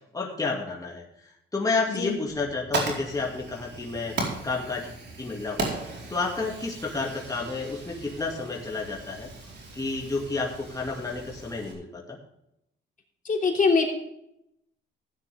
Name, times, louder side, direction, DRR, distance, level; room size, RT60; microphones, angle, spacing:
voice 1, 0.1-4.2 4.4-4.9 5.2-9.3 9.7-12.2, left 3 dB, 20° left, -2 dB, 2.5 m, -31 dB
Fire, 2.3-11.7, right 3 dB, 60° right, 4.4 m, -36 dB
voice 2, 13.2-13.8, left 4 dB, 40° left, 2 dB, 3.0 m, -22 dB
15.0 x 9.8 x 3.6 m, 0.79 s
cardioid pair, 90°, 20 cm